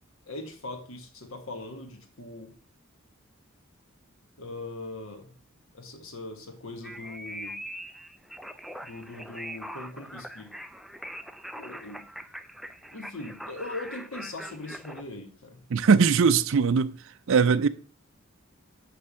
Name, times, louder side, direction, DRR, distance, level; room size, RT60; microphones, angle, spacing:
voice 1, 0.3-2.5 4.4-5.3 5.7-7.6 8.8-10.6 11.6-12.1 12.9-15.7, left 2 dB, 65° left, 1.2 m, -40 dB
sound 1, 6.8-15.0, equal, ahead, 0.3 m, -42 dB
voice 2, 15.7-17.0 17.3-17.7, right 5 dB, 65° right, 0.5 m, -20 dB
8.3 x 3.4 x 6.2 m
head